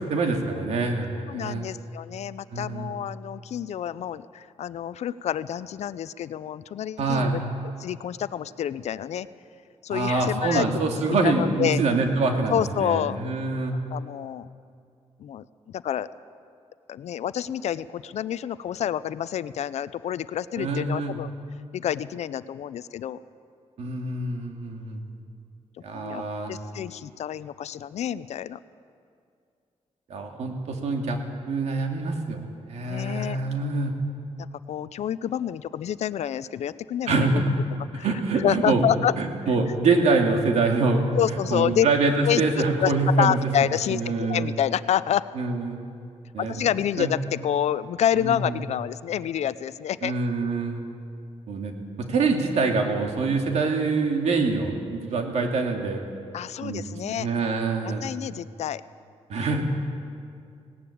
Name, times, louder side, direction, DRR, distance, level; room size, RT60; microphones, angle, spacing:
voice 1, 0.1-1.7 2.5-2.9 7.0-7.4 9.9-13.7 20.6-21.2 23.8-25.0 25.8-26.5 30.1-31.2 31.5-32.4 32.7-34.0 37.1-37.5 37.9-38.8 39.2-41.0 41.5-43.4 43.9-44.5 45.4-45.8 46.3-46.7 47.0-47.1 48.2-48.6 50.0-50.8 51.5-56.0 56.6-56.8 57.1-58.0 59.3-59.6, right 3 dB, 75° right, 3 dB, 2.6 m, -25 dB
voice 2, 1.3-7.4 7.8-9.3 9.8-10.7 11.1-11.8 12.5-13.2 13.9-14.5 15.2-16.1 16.9-21.3 21.7-23.2 25.9-28.6 32.9-33.4 34.4-37.4 37.9-38.1 38.4-39.1 41.1-41.9 42.2-42.4 42.8-45.3 46.4-50.1 56.3-57.3 57.8-58.8, left 10 dB, 70° left, 16 dB, 0.6 m, -28 dB
18.5 x 18.0 x 8.5 m, 2.4 s
wide cardioid pair, 145°, 12 cm